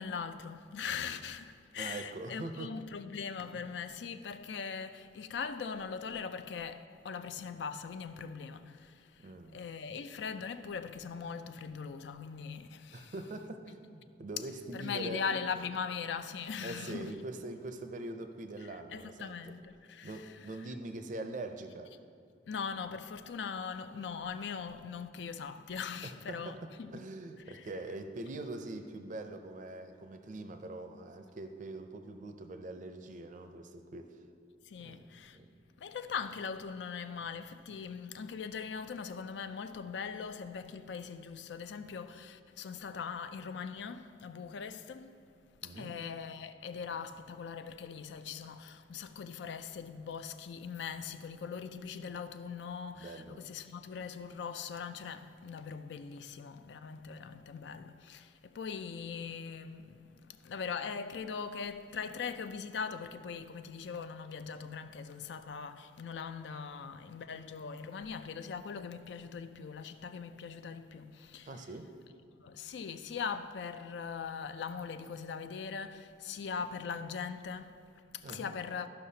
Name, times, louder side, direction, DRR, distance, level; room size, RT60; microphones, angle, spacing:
voice 1, 0.0-13.1 14.7-17.2 18.7-20.2 22.5-26.9 27.5-27.7 34.7-35.4 35.8-45.2 45.6-71.5 72.4-78.9, left 6 dB, 70° left, 0.4 m, -41 dB
voice 2, 1.8-2.7 3.5-3.7 9.2-9.7 12.9-15.2 16.6-19.6 20.0-21.9 26.0-34.2 34.8-35.1 35.3-35.6 45.6-46.0 53.0-53.4 71.4-72.0 78.2-78.5, right 2 dB, 45° right, 0.5 m, -43 dB
13.5 x 5.7 x 2.8 m
head